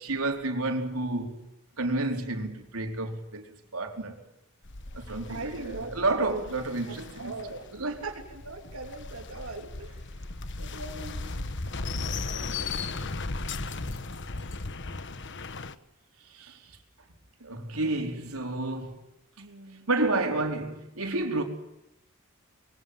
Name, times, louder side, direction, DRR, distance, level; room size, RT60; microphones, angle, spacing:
voice 1, 0.0-1.4 1.8-4.2 4.9-7.3 7.7-8.0 16.3-16.7 17.4-19.1 19.9-21.4, right 2 dB, 90° right, 4.4 m, -30 dB
sound 1, 4.6-15.7, left 3 dB, 60° left, 1.3 m, -37 dB
voice 2, 5.3-6.4 6.9-10.2 10.6-11.5 12.0-13.1 19.4-19.9, right 2 dB, 70° right, 3.3 m, -41 dB
25.5 x 22.5 x 7.8 m
head